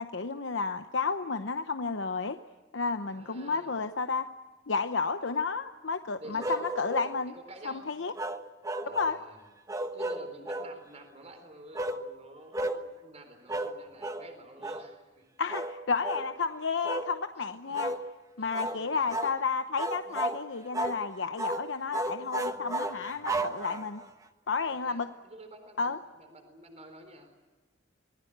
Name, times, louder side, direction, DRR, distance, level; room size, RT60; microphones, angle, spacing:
voice 1, 0.0-2.4 2.7-4.3 4.7-6.4 6.8-7.3 7.6-8.1 8.8-9.2 15.4-17.9 18.4-24.0 24.5-25.1 25.8-26.0, left 4 dB, 75° left, 8 dB, 0.9 m, -31 dB
voice 2, 3.0-3.8 6.2-6.6 7.0-7.9 8.8-15.3 17.4-18.0 18.4-19.2 22.5-23.3 24.7-27.3, right 1 dB, 35° right, 6 dB, 4.1 m, -50 dB
sound 1, 6.4-7.2 8.2-9.2 9.7-10.7 11.7-12.0 12.5-12.8 13.5-13.7 14.0-14.3 14.6-14.9 15.5-15.7 16.0-16.3 16.8-17.1 17.7-18.0 18.5-18.8 19.1-19.4 19.8-20.4 20.7-21.0 21.4-21.6 21.9-24.0, right 1 dB, 20° right, 1.3 m, -33 dB
26.0 x 20.5 x 8.1 m, 1.3 s
head